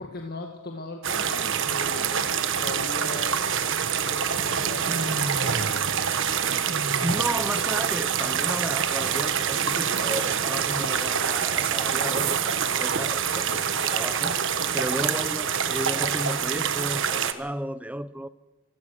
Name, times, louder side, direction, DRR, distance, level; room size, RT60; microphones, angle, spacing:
voice 1, 0.0-3.4 4.0-5.7 14.7-15.0, left 2 dB, 45° left, 1.9 m, -39 dB
sound 1, 1.0-17.3, right 7 dB, 60° right, 1.3 m, -26 dB
sound 2, 4.9-6.0 6.3-7.3, right 1 dB, 30° right, 1.1 m, -34 dB
voice 2, 7.0-14.4 14.7-18.3, right 1 dB, 5° right, 0.6 m, -33 dB
24.5 x 16.0 x 6.6 m
head